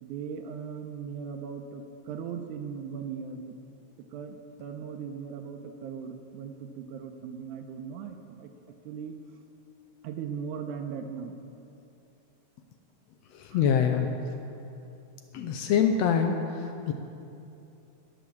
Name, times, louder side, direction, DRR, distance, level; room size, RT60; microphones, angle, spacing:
voice 1, 0.0-3.6 4.0-8.5 8.8-9.4 10.0-11.4 13.5-13.6, right 6 dB, 85° right, 5 dB, 2.1 m, -38 dB
voice 2, 13.3-14.1 15.3-16.9, left 7 dB, 75° left, 5 dB, 1.6 m, -25 dB
11.0 x 10.0 x 7.1 m, 2.7 s
omnidirectional pair, 3.5 m